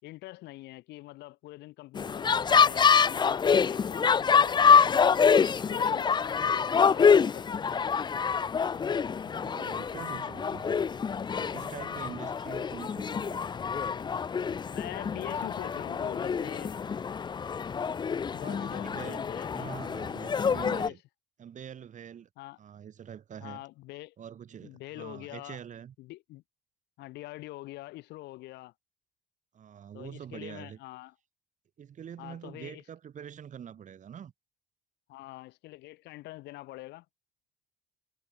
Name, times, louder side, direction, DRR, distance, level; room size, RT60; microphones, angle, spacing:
voice 1, 0.0-5.4 5.6-7.8 14.7-16.7 18.3-19.7 20.5-21.0 22.4-22.6 23.4-24.1 24.6-25.6 26.0-26.4 27.0-28.7 29.9-31.1 32.2-32.8 35.1-37.0, left 18 dB, 85° left, 6.5 m, -44 dB
sound 1, 1.9-20.9, left 6 dB, 25° left, 0.6 m, -26 dB
voice 2, 9.2-10.8 11.3-13.5 18.4-19.3 19.5-21.0 21.4-22.3 22.6-23.6 24.2-26.0 29.5-30.8 31.8-34.3, right 8 dB, 45° right, 4.0 m, -45 dB
cardioid pair, 110°, 17 cm